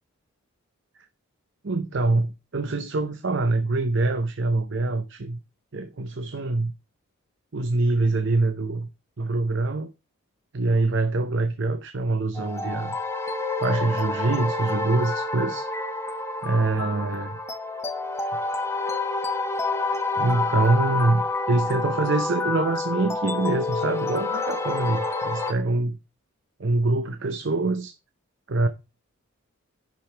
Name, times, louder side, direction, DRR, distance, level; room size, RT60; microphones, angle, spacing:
voice 1, 1.6-5.4 5.7-6.7 7.5-8.9 9.2-9.9 10.5-13.0 13.6-15.7 16.4-17.4 20.2-26.0 26.6-27.9 28.5-28.7, right 2 dB, 55° right, 0.7 m, -24 dB
sound 1, 12.4-25.5, left 3 dB, 10° left, 1.0 m, -28 dB
10.5 x 5.2 x 4.5 m
head